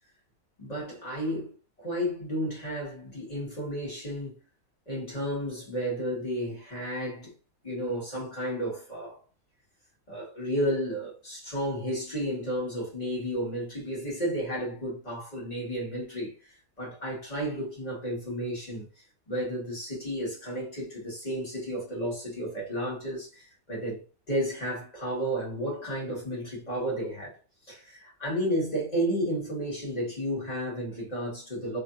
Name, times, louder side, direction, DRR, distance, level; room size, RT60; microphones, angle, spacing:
voice 1, 0.6-1.5 1.8-4.3 4.9-7.3 7.6-9.2 10.1-24.0 24.3-27.4 27.7-31.8, equal, 30° left, 1.6 m, -32 dB
3.2 x 2.7 x 2.5 m
omnidirectional pair, 1.5 m